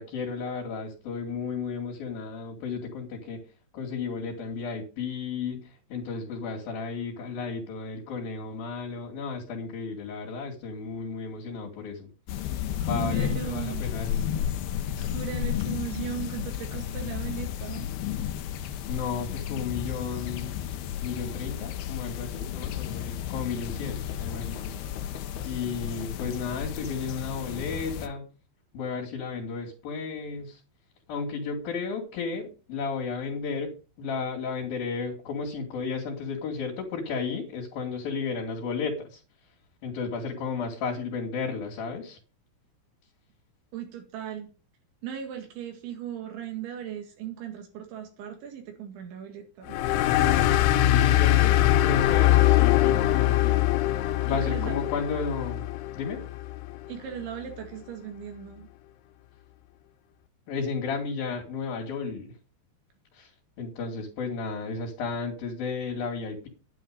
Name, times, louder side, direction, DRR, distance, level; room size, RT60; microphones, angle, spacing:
voice 1, 0.0-3.4 3.7-12.1 12.7-14.5 18.9-20.6 21.0-24.7 25.4-28.3 28.7-30.6 31.1-39.2 39.8-42.2 50.9-53.7 54.3-55.7 55.9-56.2 60.5-62.3 63.1-63.3 63.6-66.5, left 5 dB, 55° left, -2 dB, 4.2 m, -33 dB
sound 1, 12.3-28.1, left 10 dB, 70° left, 2.7 m, -32 dB
voice 2, 12.8-13.8 15.0-17.9 43.7-44.5 45.0-49.8 54.3-54.8 56.9-58.7, right 9 dB, 80° right, 4 dB, 4.3 m, -37 dB
sound 2, 49.7-56.8, left 14 dB, 90° left, 3.4 m, -22 dB
11.0 x 10.0 x 5.2 m, 0.34 s
omnidirectional pair, 5.4 m